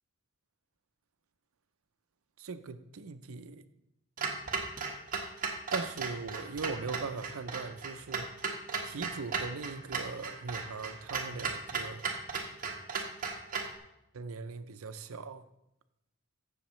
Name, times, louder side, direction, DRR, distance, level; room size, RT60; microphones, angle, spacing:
voice 1, 2.4-3.6 5.7-8.3 8.8-12.0 12.9-13.1 14.1-15.4, right 4 dB, 75° right, 11 dB, 0.6 m, -40 dB
Clock, 4.2-13.8, right 4 dB, 40° right, 1.3 m, -36 dB
15.5 x 6.4 x 3.1 m, 0.86 s
head